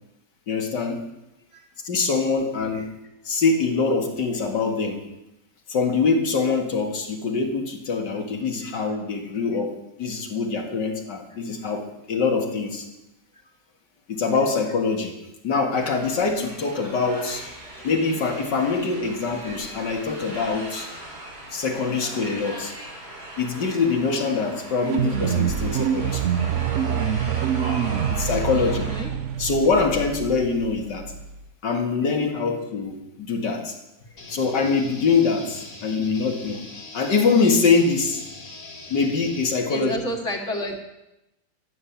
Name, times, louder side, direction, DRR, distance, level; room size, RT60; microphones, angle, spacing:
voice 1, 0.5-1.0 1.8-2.9 3.3-5.0 5.7-12.9 14.1-15.1 15.4-17.4 17.8-20.9 21.5-22.7 23.4-26.4 28.1-28.9 29.4-31.0 31.6-33.8 34.3-36.6 36.9-38.2 38.9-40.0, left 4 dB, 85° left, 3 dB, 2.5 m, -24 dB
sound 1, 15.7-29.0, right 1 dB, 85° right, 4.8 m, -39 dB
sound 2, 24.8-31.5, right 8 dB, 60° right, 0.9 m, -26 dB
voice 2, 28.5-29.1 39.7-40.8, equal, 45° left, 1 dB, 1.9 m, -31 dB
sound 3, 34.2-39.6, left 2 dB, 65° left, 2.7 m, -41 dB
14.0 x 9.8 x 7.2 m, 0.91 s
omnidirectional pair, 1.8 m